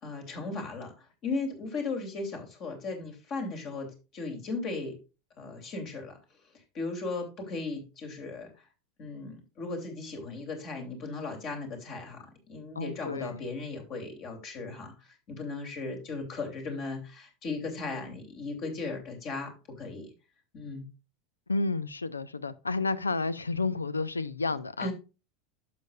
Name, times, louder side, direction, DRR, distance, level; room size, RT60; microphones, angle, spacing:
voice 1, 0.0-5.0 5.4-6.2 6.7-8.6 9.0-20.1 20.5-20.9 24.8-24.9, left 3 dB, 40° left, 3.2 m, -37 dB
voice 2, 12.8-13.4 21.5-24.9, left 3 dB, 85° left, 0.5 m, -31 dB
11.5 x 6.8 x 2.4 m
figure-of-eight pair, 85°, 0 cm